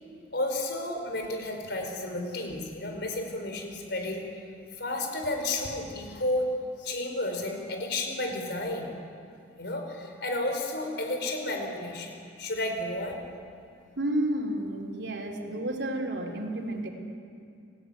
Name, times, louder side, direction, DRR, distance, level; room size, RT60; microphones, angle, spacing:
voice 1, 0.3-4.2 4.7-6.5 6.8-8.9 9.6-13.2, left 2 dB, 60° left, 3 dB, 5.2 m, -32 dB
voice 2, 14.0-16.9, right 1 dB, 70° right, 2 dB, 3.6 m, -31 dB
29.5 x 18.5 x 9.4 m, 2.4 s
head